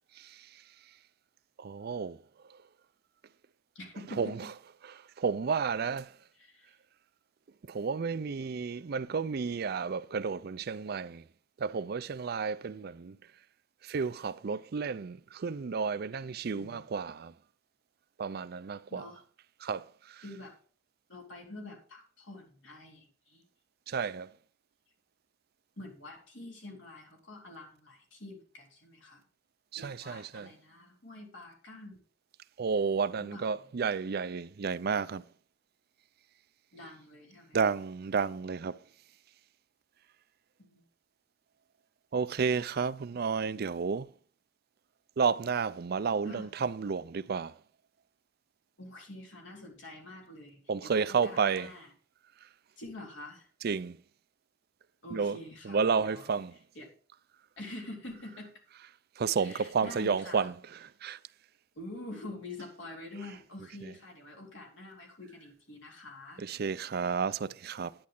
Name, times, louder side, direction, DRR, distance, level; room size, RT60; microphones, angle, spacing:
voice 1, 0.2-0.6 1.6-2.2 4.2-4.5 4.9-6.1 7.7-11.2 11.6-13.2 13.8-17.3 18.2-19.1 19.6-20.2 23.9-24.3 29.7-30.5 32.6-35.2 37.5-38.8 42.1-44.1 45.2-47.6 50.7-51.7 53.6-54.0 55.1-55.4 55.6-56.6 59.2-61.2 66.4-67.9, right 5 dB, 55° right, 0.5 m, -31 dB
voice 2, 3.8-4.4 6.4-6.7 16.5-16.8 18.9-19.2 20.2-20.5 21.1-23.4 25.8-29.2 29.8-32.0 33.2-33.5 36.7-37.7 40.6-40.8 46.3-46.5 48.8-51.9 52.8-53.5 55.0-56.3 56.8-56.9 57.6-58.6 59.4-60.5 61.8-66.5, left 2 dB, 80° left, 3.7 m, -46 dB
10.5 x 9.5 x 3.8 m
head